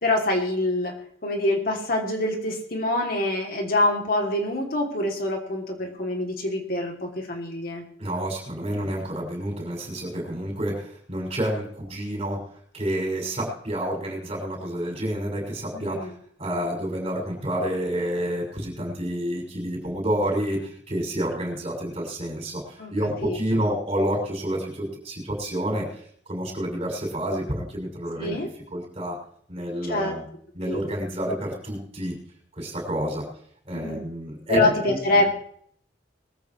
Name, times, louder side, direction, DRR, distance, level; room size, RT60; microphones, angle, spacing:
voice 1, 0.0-0.9 1.2-7.8 15.7-16.1 22.8-22.9 23.2-23.4 28.2-28.5 29.9-30.2 30.7-30.8 33.7-34.0 34.5-35.3, left 2 dB, 55° left, 2 dB, 2.8 m, -25 dB
voice 2, 8.0-12.5 12.7-16.1 16.4-25.9 26.3-28.4 28.7-29.2 29.5-30.2 30.5-32.2 32.6-33.3 33.7-35.0, right 1 dB, 35° right, 0 dB, 6.4 m, -29 dB
21.0 x 14.0 x 3.2 m, 0.64 s
head